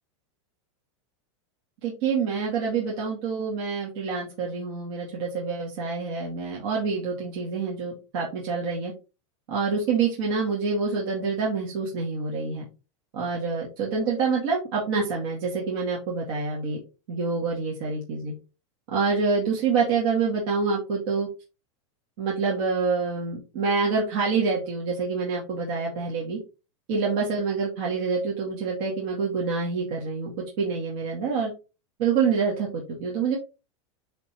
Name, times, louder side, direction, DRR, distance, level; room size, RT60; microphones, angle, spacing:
voice 1, 1.8-8.9 9.5-12.7 13.1-16.8 17.1-18.3 18.9-21.3 22.2-26.4 26.9-31.5 32.0-33.4, right 5 dB, 50° right, -3 dB, 2.3 m, -27 dB
9.4 x 3.8 x 3.1 m, 0.30 s
supercardioid pair, 170°, 17 cm